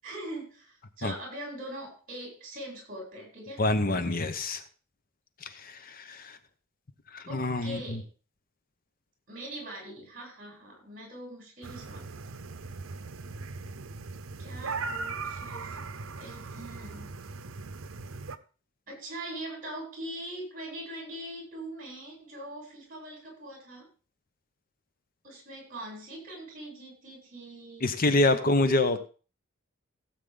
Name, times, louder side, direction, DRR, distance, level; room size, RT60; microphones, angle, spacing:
voice 1, 0.0-3.6 7.3-8.1 9.3-12.1 14.4-15.8 16.2-17.1 18.9-23.9 25.2-27.9 28.3-29.0, right 1 dB, 45° right, -1 dB, 7.9 m, -42 dB
voice 2, 3.6-4.6 5.4-6.4 7.1-8.0 27.8-29.0, left 2 dB, 45° left, 9 dB, 0.9 m, -26 dB
sound 1, 11.6-18.4, right 4 dB, 80° right, 0.8 m, -39 dB
16.5 x 8.4 x 3.9 m, 0.36 s
head